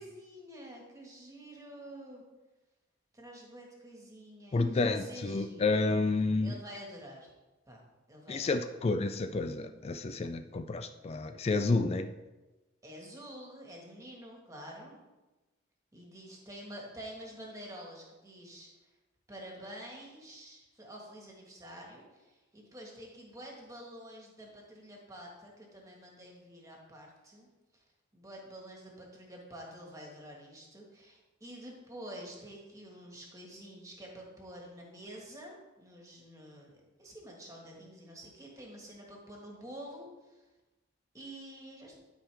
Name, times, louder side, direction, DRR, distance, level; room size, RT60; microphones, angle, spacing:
voice 1, 0.0-2.2 3.1-5.8 6.4-7.3 7.7-7.8 8.1-8.7 12.8-15.0 15.9-18.7 19.3-27.5 27.7-27.8 28.1-40.5 41.1-42.0, equal, 15° right, -1 dB, 1.6 m, -48 dB
voice 2, 4.5-6.6 8.3-12.1, left 3 dB, 30° left, 9 dB, 0.3 m, -30 dB
12.0 x 4.7 x 3.4 m, 1.1 s
head